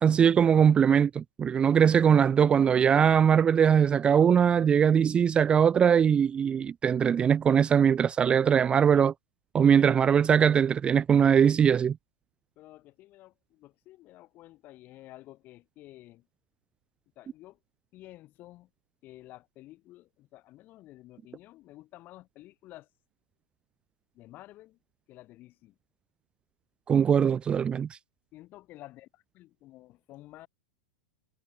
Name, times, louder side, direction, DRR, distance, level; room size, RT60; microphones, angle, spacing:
voice 1, 0.0-9.1 9.5-12.0 26.9-27.9, right 7 dB, 20° right, 0.4 m, -21 dB
voice 2, 12.6-16.3 17.2-17.6 17.9-18.7 19.0-22.9 24.1-24.8 25.1-25.8 28.3-30.5, left 16 dB, 40° left, 4.0 m, -51 dB
figure-of-eight pair, 95°, 5 cm